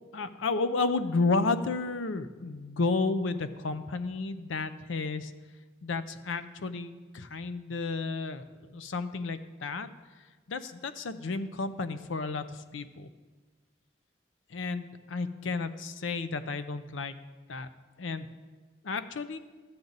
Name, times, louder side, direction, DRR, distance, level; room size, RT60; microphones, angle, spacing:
voice 1, 0.1-5.3 5.8-8.4 8.7-9.9 10.5-13.1 14.5-17.2 17.5-17.7 18.0-18.3 18.8-19.4, left 3 dB, 85° left, 12 dB, 0.6 m, -32 dB
13.0 x 8.7 x 4.0 m, 1.3 s
head